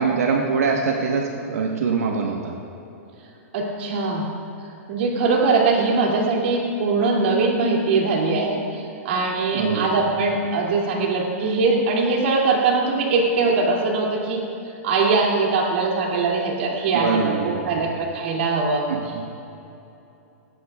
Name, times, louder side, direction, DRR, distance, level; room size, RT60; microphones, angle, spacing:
voice 1, 0.0-2.5 9.5-9.9 16.9-17.8 18.9-19.3, right 5 dB, 85° right, 1 dB, 1.2 m, -23 dB
voice 2, 3.5-4.2 4.9-14.4 14.8-18.9, right 3 dB, 50° right, -1 dB, 2.5 m, -21 dB
19.0 x 16.5 x 2.4 m, 2.9 s
hypercardioid pair, 170°, 8 cm